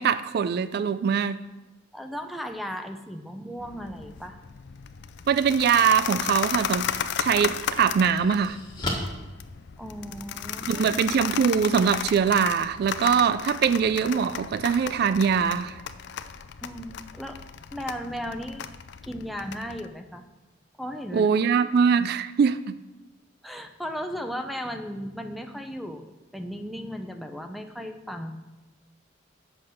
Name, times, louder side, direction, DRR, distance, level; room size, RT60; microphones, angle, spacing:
voice 1, 0.0-1.4 5.3-6.9 7.2-8.6 10.7-15.8 21.1-22.8, right 6 dB, 55° right, 14 dB, 0.3 m, -22 dB
voice 2, 1.9-4.4 9.8-10.8 16.6-17.4 17.7-18.7 19.0-20.3 20.8-21.3 23.4-28.3, equal, ahead, 6 dB, 0.6 m, -36 dB
sound 1, 3.6-19.9, left 8 dB, 65° left, 0.4 m, -35 dB
sound 2, 7.3-10.3, left 1 dB, 25° left, 1.5 m, -36 dB
7.8 x 5.8 x 6.3 m, 1.1 s
head